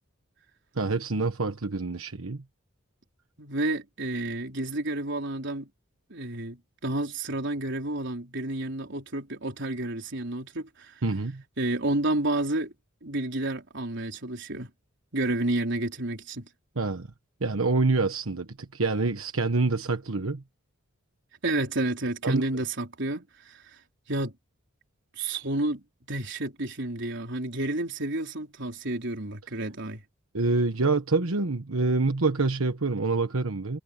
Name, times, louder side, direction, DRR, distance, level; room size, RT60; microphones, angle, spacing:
voice 1, 0.7-2.4 11.0-11.4 16.8-17.1 17.4-20.4 22.2-22.4 30.3-33.8, right 3 dB, 90° right, 1.2 m, -26 dB
voice 2, 3.4-5.7 6.1-10.9 11.6-12.7 13.0-14.7 15.1-16.5 21.4-23.6 24.1-24.3 25.2-30.0, right 2 dB, 60° right, 4.1 m, -30 dB
head